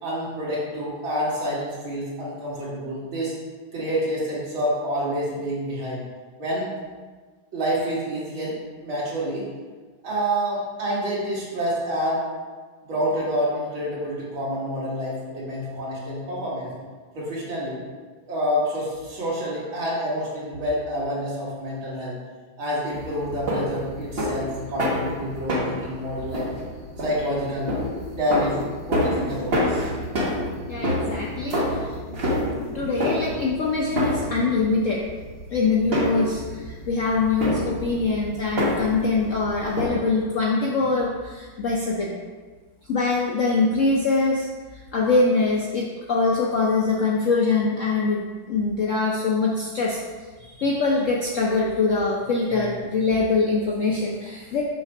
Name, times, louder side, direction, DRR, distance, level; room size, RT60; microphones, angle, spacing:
voice 1, 0.0-3.3 3.7-6.0 6.4-6.7 7.5-8.6 8.8-9.5 10.0-12.2 12.8-16.7 17.1-17.8 18.3-22.2 22.6-26.5 27.0-27.7 28.1-28.6 28.9-29.9 30.9-31.1, equal, 80° right, -7 dB, 2.8 m, -28 dB
sound 1, 22.9-39.9, equal, 35° right, 1.1 m, -28 dB
voice 2, 30.7-31.6 32.7-35.0 35.5-42.1 42.9-44.5 44.9-48.2 48.5-50.0 50.4-54.6, left 3 dB, 90° left, -2 dB, 0.6 m, -23 dB
6.8 x 3.3 x 5.8 m, 1.4 s
omnidirectional pair, 2.2 m